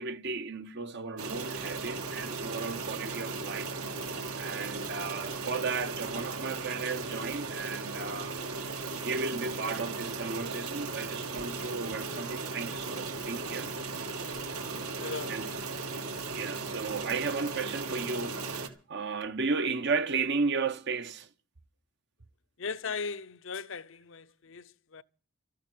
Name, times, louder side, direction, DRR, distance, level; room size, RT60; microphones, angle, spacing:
voice 1, 0.0-3.7 4.4-8.7 9.0-13.7 15.3-15.5 16.3-21.3, right 4 dB, 50° right, 0.8 m, -34 dB
sound 1, 1.2-18.7, right 3 dB, 80° right, 2.2 m, -37 dB
voice 2, 15.0-15.5 22.6-25.0, left 5 dB, 60° left, 0.6 m, -38 dB
14.0 x 9.4 x 8.4 m
head